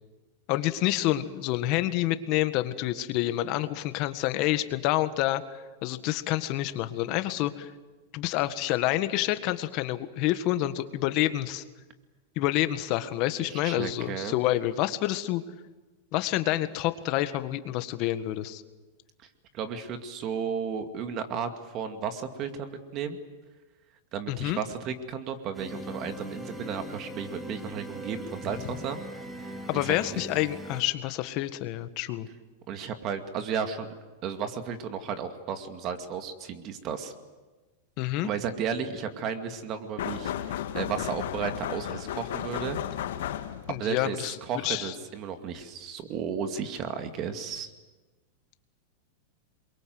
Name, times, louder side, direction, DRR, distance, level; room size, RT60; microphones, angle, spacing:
voice 1, 0.5-7.7 8.1-11.6 12.3-15.4 16.1-18.6 24.3-24.6 29.7-32.3 38.0-38.3 43.7-44.9, left 15 dB, 45° left, 11 dB, 1.6 m, -28 dB
voice 2, 13.4-14.3 19.5-23.2 24.1-29.0 29.4-29.9 32.7-33.9 34.2-37.1 38.2-42.8 43.7-47.7, right 7 dB, 35° right, 7 dB, 2.3 m, -34 dB
sound 1, 25.5-30.8, equal, 5° right, 2.4 m, -40 dB
sound 2, 40.0-43.8, left 11 dB, 75° left, 1.8 m, -34 dB
28.0 x 23.0 x 7.9 m, 1.2 s
supercardioid pair, 140°, 0 cm